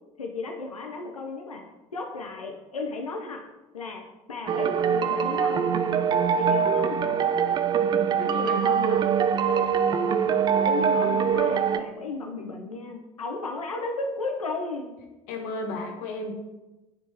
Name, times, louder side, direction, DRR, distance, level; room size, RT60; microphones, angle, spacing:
voice 1, 0.2-1.6 1.9-3.4 3.7-5.6 6.4-7.2 10.6-14.9, left 3 dB, 85° left, 3 dB, 0.7 m, -34 dB
sound 1, 4.5-11.8, right 7 dB, 25° right, 0.4 m, -23 dB
voice 2, 8.2-9.1 15.3-16.3, left 2 dB, 55° left, 3 dB, 1.1 m, -33 dB
10.5 x 4.5 x 2.9 m, 1.1 s
figure-of-eight pair, 70°, 18 cm